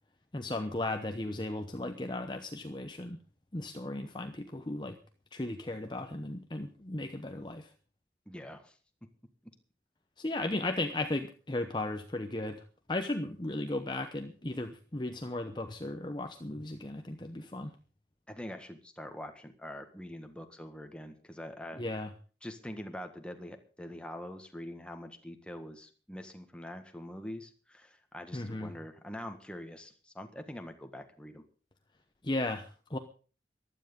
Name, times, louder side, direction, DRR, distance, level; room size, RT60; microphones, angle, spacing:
voice 1, 0.3-3.2 3.5-5.0 5.3-7.7 10.2-12.6 12.9-17.7 21.8-22.1 28.3-28.7 32.2-33.0, left 2 dB, 25° left, 7 dB, 0.9 m, -35 dB
voice 2, 8.3-9.1 9.4-9.5 18.3-21.8 22.4-31.4, left 1 dB, 5° left, 6 dB, 1.7 m, -44 dB
15.5 x 12.0 x 5.3 m, 0.38 s
head